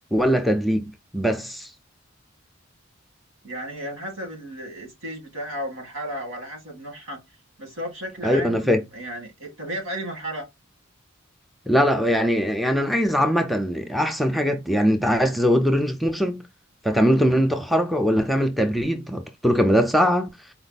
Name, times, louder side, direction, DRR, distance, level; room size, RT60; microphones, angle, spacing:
voice 1, 0.1-0.8 1.1-1.7 8.2-8.8 11.7-16.5 16.8-20.3, equal, ahead, 0.5 m, -21 dB
voice 2, 3.4-7.2 7.6-10.4, equal, 80° right, 2.2 m, -34 dB
4.5 x 2.1 x 4.0 m
head